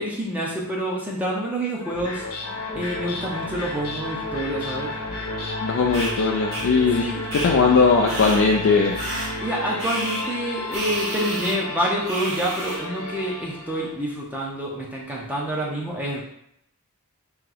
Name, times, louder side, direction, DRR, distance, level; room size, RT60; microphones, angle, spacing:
voice 1, 0.0-2.2 2.7-4.9 7.0-7.2 9.4-16.2, right 1 dB, 5° right, -4 dB, 0.6 m, -27 dB
sound 1, 1.8-14.0, left 2 dB, 85° left, 0.9 m, -32 dB
voice 2, 5.6-7.1 7.3-9.0, left 4 dB, 55° left, 0 dB, 0.4 m, -19 dB
sound 2, 5.9-6.1 6.5-6.6 7.3-7.5 8.1-8.4 9.0-9.3 9.8-10.2 10.7-11.5 12.1-12.8, right 1 dB, 60° right, 1.5 m, -30 dB
3.0 x 2.8 x 3.8 m, 0.74 s
head